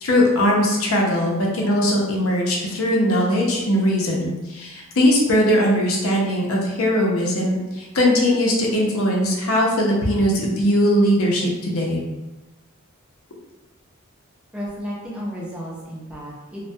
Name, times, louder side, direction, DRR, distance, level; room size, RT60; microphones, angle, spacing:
voice 1, 0.0-12.0, equal, 75° left, -1 dB, 0.6 m, -20 dB
voice 2, 14.5-16.7, equal, 5° right, -6 dB, 0.5 m, -33 dB
2.2 x 2.1 x 2.6 m, 1.1 s
head